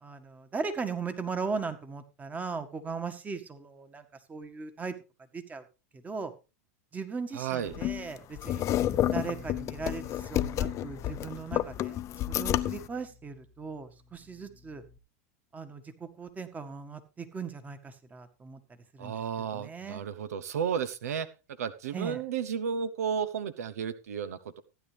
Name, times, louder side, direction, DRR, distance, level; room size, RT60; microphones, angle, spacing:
voice 1, 0.0-4.0 4.3-4.9 5.3-5.6 5.9-6.3 6.9-8.7 9.1-12.0 12.3-14.8 15.5-18.6 18.9-19.1 19.5-20.0 21.9-22.2, right 5 dB, 20° right, 9 dB, 1.7 m, -38 dB
voice 2, 7.3-7.8 19.0-21.3 21.6-24.6, right 7 dB, 85° right, 15 dB, 0.9 m, -33 dB
sound 1, 7.7-12.9, left 12 dB, 40° left, 0.6 m, -30 dB
Bass guitar, 8.7-15.0, left 3 dB, 5° left, 1.2 m, -51 dB
15.0 x 10.0 x 3.4 m, 0.30 s
hypercardioid pair, 110°, 8 cm